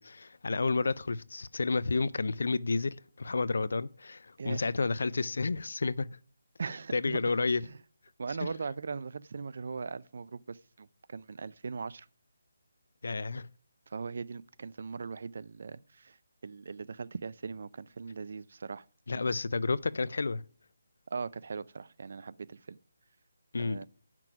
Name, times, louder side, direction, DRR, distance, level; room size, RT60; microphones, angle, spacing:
voice 1, 0.0-6.1 6.9-7.6 13.0-13.5 19.1-20.4 23.5-23.9, left 3 dB, 60° left, 0.5 m, -31 dB
voice 2, 6.6-7.3 7.6-7.8 8.2-12.1 13.9-16.2 16.4-18.9 21.1-22.8 23.6-23.9, right 5 dB, 40° right, 0.4 m, -39 dB
9.0 x 6.0 x 5.9 m
hypercardioid pair, 180°, 0 cm